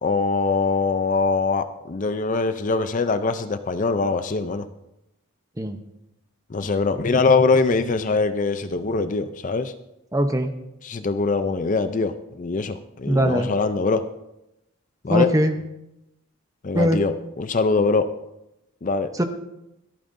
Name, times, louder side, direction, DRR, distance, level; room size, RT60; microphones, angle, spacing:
voice 1, 0.0-4.6 6.5-9.7 10.8-14.0 15.0-15.3 16.6-18.1 18.8-19.1, left 4 dB, 35° left, 10 dB, 0.5 m, -22 dB
voice 2, 10.1-10.5 13.1-13.5 15.1-15.5 16.7-17.0 19.1-19.2, right 1 dB, 15° right, 7 dB, 0.7 m, -21 dB
25.5 x 8.9 x 2.6 m, 0.89 s
head